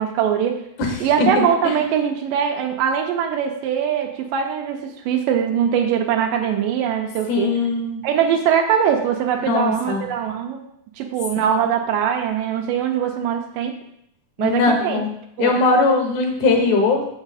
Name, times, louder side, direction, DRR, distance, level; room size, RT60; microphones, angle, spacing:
voice 1, 0.0-0.7 1.0-7.6 8.0-10.6 11.0-13.8 14.4-15.0 15.4-15.6, right 8 dB, 85° right, 3 dB, 2.4 m, -22 dB
voice 2, 0.8-1.3 1.6-1.8 7.3-8.0 9.5-10.0 14.4-15.1 15.4-17.1, left 3 dB, 70° left, 3 dB, 2.3 m, -20 dB
7.1 x 6.1 x 4.1 m, 0.75 s
omnidirectional pair, 3.8 m